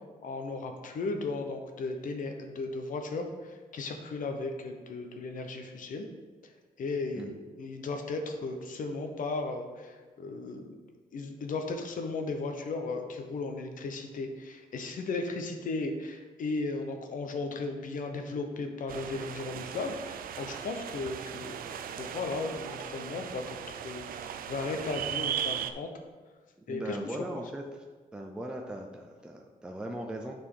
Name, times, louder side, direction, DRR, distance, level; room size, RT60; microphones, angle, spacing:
voice 1, 0.2-6.1 6.4-6.5 6.8-10.8 11.1-23.6 23.8-25.9 26.7-27.4, left 3 dB, 65° left, 5 dB, 0.9 m, -36 dB
sound 1, 18.9-25.7, right 9 dB, 75° right, 0.4 m, -38 dB
voice 2, 26.7-27.8 28.1-30.3, right 1 dB, 5° right, 2 dB, 0.5 m, -39 dB
9.8 x 4.3 x 3.8 m, 1.4 s
wide cardioid pair, 170°, 15 cm